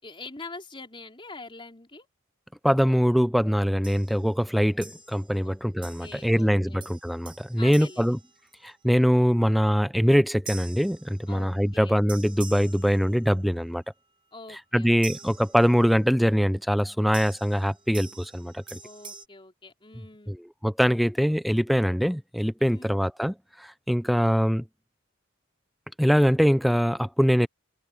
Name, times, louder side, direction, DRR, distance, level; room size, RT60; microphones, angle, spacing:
voice 1, 0.0-2.1 5.4-5.6 6.0-6.8 7.6-8.2 11.3-12.0 14.3-15.1 18.8-20.4 22.6-23.0, left 3 dB, 25° left, 4.3 m, -44 dB
voice 2, 2.6-8.2 8.6-13.8 14.7-18.8 20.3-20.4 20.6-24.6 26.0-27.5, equal, ahead, 0.4 m, -23 dB
sound 1, 3.8-4.2 4.8-5.4 5.8-6.4 6.8-8.9 10.5-11.6 12.1-13.5 15.0-16.1 17.1-19.2, right 4 dB, 25° right, 5.4 m, -46 dB
head